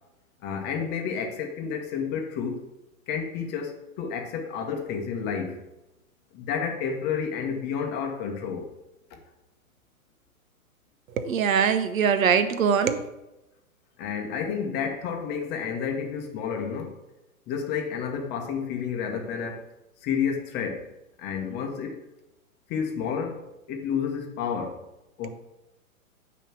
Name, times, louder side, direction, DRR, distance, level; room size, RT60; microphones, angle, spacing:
voice 1, 0.4-2.6 3.1-5.6 6.3-8.7 14.0-16.9 17.5-19.7 20.0-20.9 21.2-22.0 22.7-24.8 25.2-25.3, left 6 dB, 25° left, 3 dB, 0.9 m, -30 dB
voice 2, 11.2-13.1 25.2-25.3, right 7 dB, 70° right, 10 dB, 0.8 m, -22 dB
9.0 x 3.1 x 6.0 m, 0.95 s
hypercardioid pair, 125°, 43 cm